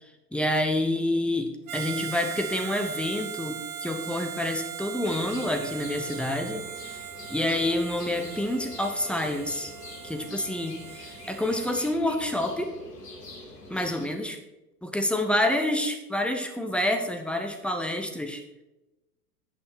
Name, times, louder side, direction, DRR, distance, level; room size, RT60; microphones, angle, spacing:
voice 1, 0.3-7.0 7.3-9.7 10.0-12.7 13.7-14.4 14.8-18.6, left 1 dB, ahead, 5 dB, 0.7 m, -28 dB
Harmonica, 1.7-12.0, right 9 dB, 60° right, 0.9 m, -39 dB
sound 1, 5.0-14.1, left 2 dB, 80° left, 3.3 m, -44 dB
9.6 x 6.0 x 5.9 m, 0.98 s
figure-of-eight pair, 100°, 48 cm